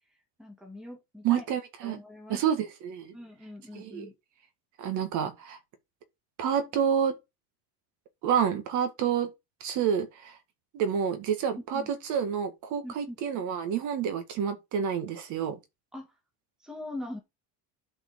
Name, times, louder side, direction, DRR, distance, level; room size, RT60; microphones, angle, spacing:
voice 1, 0.4-1.4 1.8-2.4 3.1-4.1 11.7-11.9 12.8-13.1 15.9-16.1 16.6-17.2, left 1 dB, ahead, 1.7 m, -41 dB
voice 2, 1.2-2.0 2.3-3.1 3.8-4.1 4.8-5.6 6.4-7.1 8.2-9.3 9.6-10.3 10.7-11.8 12.1-15.6, right 8 dB, 45° right, 1.9 m, -28 dB
12.0 x 4.6 x 4.7 m
cardioid pair, 180°, 40 cm